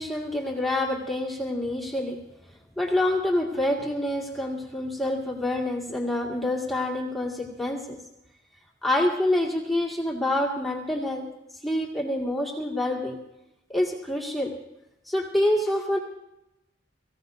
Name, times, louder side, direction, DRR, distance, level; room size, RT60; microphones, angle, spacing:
voice 1, 0.0-2.2 2.8-8.0 8.8-11.3 11.6-13.2 13.7-14.5 15.1-16.0, left 1 dB, ahead, -3 dB, 2.0 m, -27 dB
24.0 x 16.0 x 2.6 m, 0.89 s
head